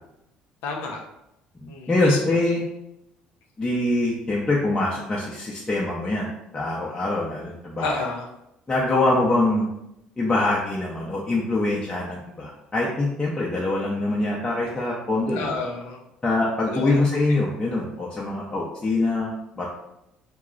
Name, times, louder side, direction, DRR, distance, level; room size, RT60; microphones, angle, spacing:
voice 1, 0.6-1.0 1.7-2.4 7.8-8.3 15.3-16.0 16.6-17.0, left 3 dB, 75° left, 1 dB, 0.6 m, -30 dB
voice 2, 1.6-2.6 3.6-6.3 6.5-8.0 8.7-9.7 10.2-15.6 16.2-19.7, left 2 dB, 20° left, -6 dB, 0.6 m, -24 dB
2.3 x 2.0 x 3.7 m, 0.84 s
hypercardioid pair, 60°, 4 cm